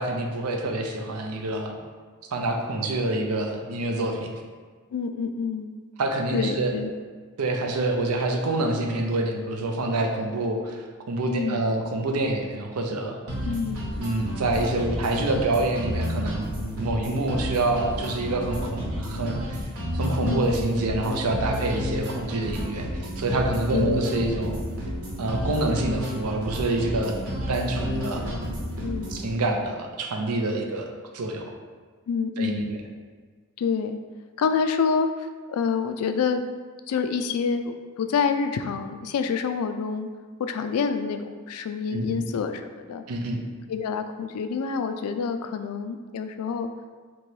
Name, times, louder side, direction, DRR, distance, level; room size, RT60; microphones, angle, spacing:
voice 1, 0.0-1.8 2.2-4.3 6.0-6.7 7.4-13.2 14.0-16.5 16.7-19.7 19.9-24.6 25.2-27.2 27.5-28.4 29.1-31.5 32.4-32.8 41.9-42.2 43.1-43.5, right 2 dB, 90° right, 3 dB, 0.6 m, -27 dB
voice 2, 4.9-5.8 6.3-6.9 11.3-11.6 13.4-13.9 20.2-20.5 23.7-24.0 27.7-27.8 28.8-29.2 32.1-32.9 33.6-34.0 34.4-36.4 36.9-40.1 40.4-43.0 43.7-46.7, left 5 dB, 80° left, 9 dB, 0.3 m, -27 dB
sound 1, 13.3-29.3, equal, 70° right, 1.0 m, -31 dB
3.1 x 2.9 x 4.5 m, 1.5 s
head